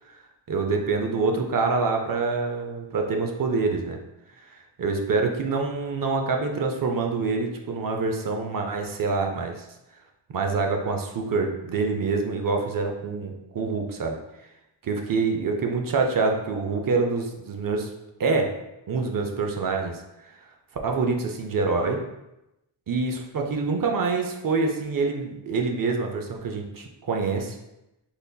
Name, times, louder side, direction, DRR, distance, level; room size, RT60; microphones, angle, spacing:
voice 1, 0.5-4.0 4.8-9.6 10.3-14.2 14.8-17.9 18.2-18.6 18.9-20.0 20.8-22.0 22.9-27.6, right 4 dB, 50° right, 3 dB, 0.5 m, -26 dB
3.9 x 3.3 x 2.3 m, 0.92 s
wide cardioid pair, 90°, 45 cm